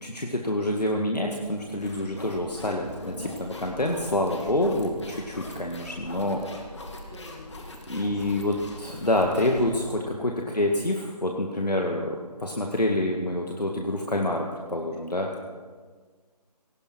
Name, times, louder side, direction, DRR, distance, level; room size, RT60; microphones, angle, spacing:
voice 1, 0.0-6.4 7.9-15.3, left 1 dB, 75° left, 1 dB, 1.9 m, -27 dB
sound 1, 1.4-10.2, left 2 dB, 45° left, 2.3 m, -42 dB
voice 2, 2.8-3.1 5.1-5.2 6.0-6.5 6.8-8.4 9.0-9.1, equal, 5° left, -6 dB, 0.5 m, -46 dB
18.5 x 15.5 x 4.5 m, 1.5 s
figure-of-eight pair, 155°, 21 cm